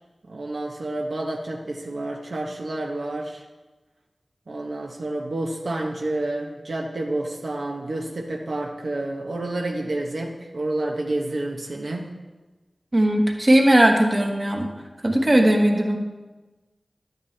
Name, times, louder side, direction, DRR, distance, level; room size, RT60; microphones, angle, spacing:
voice 1, 0.3-3.4 4.5-12.1, right 2 dB, 80° right, 0 dB, 0.9 m, -29 dB
voice 2, 12.9-14.7 15.0-16.0, right 1 dB, 40° right, 2 dB, 1.3 m, -18 dB
11.0 x 9.1 x 3.3 m, 1.2 s
wide cardioid pair, 60°, 0 cm